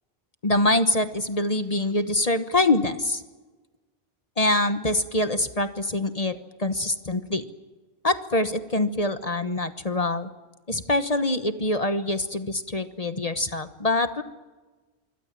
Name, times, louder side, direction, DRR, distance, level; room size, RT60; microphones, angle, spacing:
voice 1, 0.4-3.2 4.4-7.5 8.0-10.3 10.7-14.2, left 2 dB, 40° left, 9 dB, 1.2 m, -24 dB
26.0 x 24.0 x 7.5 m, 1.2 s
omnidirectional pair, 1.1 m